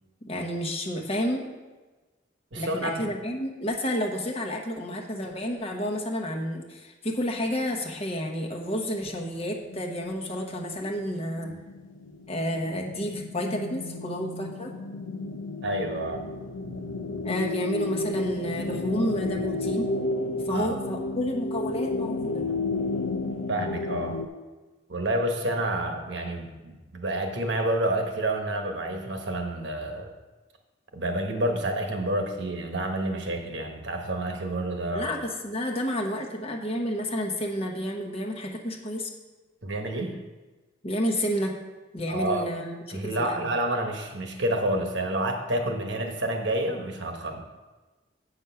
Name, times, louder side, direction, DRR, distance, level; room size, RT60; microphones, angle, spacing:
voice 1, 0.2-1.5 2.6-11.5 12.3-14.7 17.2-19.9 20.3-22.5 34.9-39.1 40.8-41.5 41.9-43.5, equal, 30° left, 1 dB, 1.1 m, -30 dB
voice 2, 2.5-3.1 11.5-11.6 15.6-16.2 20.5-20.7 23.5-24.2 24.9-30.1 30.9-35.1 39.6-40.2 42.1-42.5 42.9-47.4, right 1 dB, 65° right, 4 dB, 1.2 m, -29 dB
sound 1, 7.7-7.8 8.7-24.3, left 2 dB, 85° left, 0.7 m, -32 dB
8.5 x 6.2 x 5.7 m, 1.2 s
head